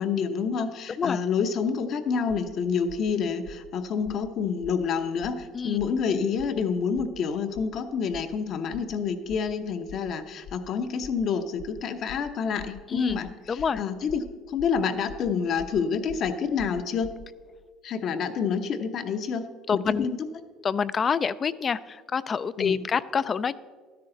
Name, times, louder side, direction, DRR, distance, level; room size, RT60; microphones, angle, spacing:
voice 1, 0.0-17.1 17.8-19.5 19.7-20.3 22.6-22.8, left 6 dB, 55° left, 8 dB, 0.9 m, -28 dB
sound 1, 2.3-2.5 2.9-3.1 3.4-3.7 4.0-4.3 4.6-4.9 5.2-5.5 5.8-6.0 6.4-6.6 6.9-7.2 7.5-7.8 8.1-8.4 8.7-9.0 9.3-9.5 9.9-10.1 10.4-10.7 11.0-11.2 11.6-11.8 12.1-12.3 12.6-12.8 13.1-13.3 13.6-13.8 14.1-14.3 14.6-14.8 15.1-15.3 15.6-15.8 16.1-16.3 16.6-17.3, left 5 dB, 80° left, 0.9 m, -45 dB
voice 2, 13.5-13.8 19.7-20.1 20.6-23.6, left 6 dB, 35° left, 17 dB, 0.4 m, -27 dB
12.5 x 10.5 x 3.9 m, 1.5 s
supercardioid pair, 95°, 0 cm